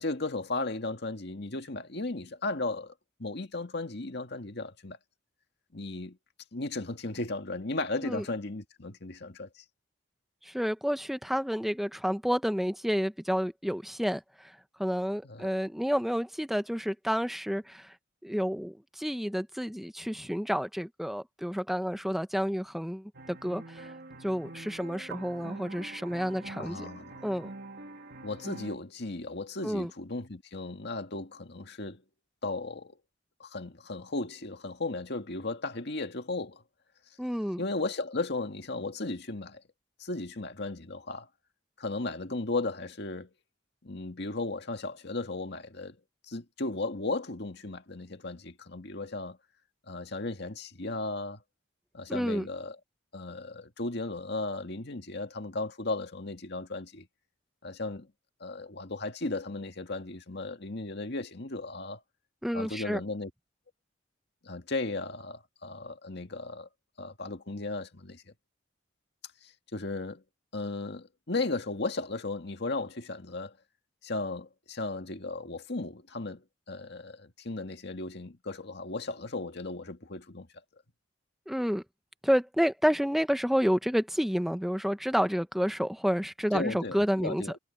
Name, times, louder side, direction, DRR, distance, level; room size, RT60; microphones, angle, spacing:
voice 1, 0.0-2.9 3.2-5.0 5.7-6.2 6.5-9.6 15.2-15.5 26.6-27.2 28.2-32.0 32.4-33.0 33.4-36.6 37.6-39.6 40.0-41.3 41.8-43.3 43.8-46.0 46.3-49.4 49.9-51.4 51.9-52.8 53.1-57.1 57.6-58.1 58.4-62.0 62.5-63.3 64.4-66.7 67.0-68.2 69.4-70.2 70.5-73.5 74.0-80.5 86.5-87.6, left 2 dB, 60° left, 1.9 m, -35 dB
voice 2, 10.4-14.5 14.8-17.9 18.2-23.9 24.2-26.8 27.2-27.5 29.6-29.9 37.2-37.6 52.1-52.5 62.4-63.0 81.5-81.8 82.2-87.4, equal, ahead, 1.0 m, -30 dB
sound 1, 23.1-28.8, right 3 dB, 60° right, 2.7 m, -45 dB
head